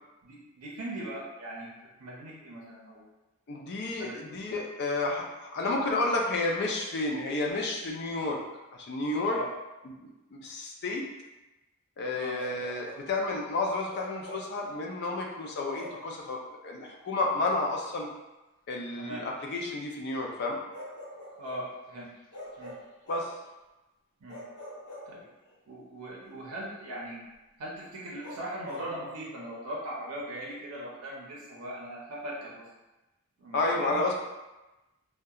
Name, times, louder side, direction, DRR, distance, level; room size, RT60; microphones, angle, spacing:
voice 1, 0.2-1.7 2.0-3.0 4.0-4.2 9.3-9.5 12.2-12.4 19.0-19.2 21.4-22.1 22.6-22.7 24.2-24.4 25.1-25.2 25.7-27.2 27.6-32.7 33.4-34.0, right 1 dB, 90° right, -4 dB, 0.6 m, -39 dB
voice 2, 3.5-8.4 8.7-9.4 10.0-11.0 12.0-18.1 18.7-20.6 23.1-23.3 33.5-34.2, left 2 dB, 50° left, 0 dB, 0.4 m, -31 dB
Bark, 12.4-13.1 13.9-14.6 15.7-16.1 17.8-17.9 20.7-21.7 22.3-23.4 24.3-25.5 28.2-28.9, left 1 dB, 80° left, 0.7 m, -44 dB
2.7 x 2.2 x 2.3 m, 1.0 s
head